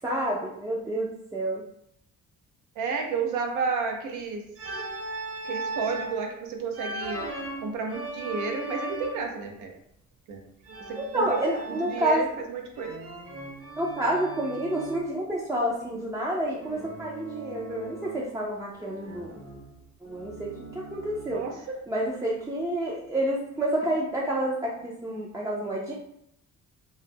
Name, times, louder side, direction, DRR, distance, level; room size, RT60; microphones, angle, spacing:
voice 1, 0.0-1.7 11.0-12.3 13.8-19.3 20.0-21.5 21.9-25.9, right 1 dB, 10° right, -4 dB, 0.4 m, -29 dB
voice 2, 2.8-4.4 5.4-7.2 7.6-9.7 10.3-10.4 10.9-11.4 11.9-13.0 21.3-21.8, right 5 dB, 85° right, 2 dB, 0.6 m, -31 dB
Organ, 4.6-6.2 6.7-9.4 10.6-12.4 12.8-15.1 16.6-18.4 18.7-21.5, right 2 dB, 45° right, 0.9 m, -38 dB
2.3 x 2.0 x 3.3 m, 0.74 s
cardioid pair, 90°, 30 cm